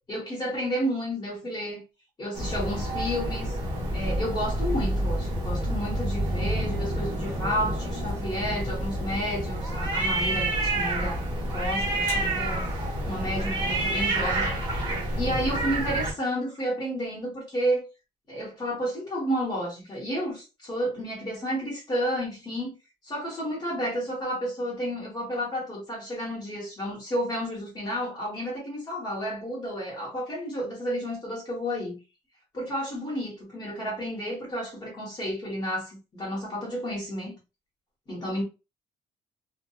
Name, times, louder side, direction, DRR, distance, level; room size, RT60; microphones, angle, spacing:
voice 1, 0.1-1.8 2.2-3.6 3.9-11.2 11.5-12.7 13.1-14.7 15.2-17.8 18.3-22.8 23.0-32.0 32.5-37.3 38.1-38.4, equal, 25° left, 1.2 m, -31 dB
sound 1, 2.3-16.1, right 1 dB, 25° right, 1.1 m, -28 dB
2.8 x 2.4 x 2.3 m
cardioid pair, 135°, 17 cm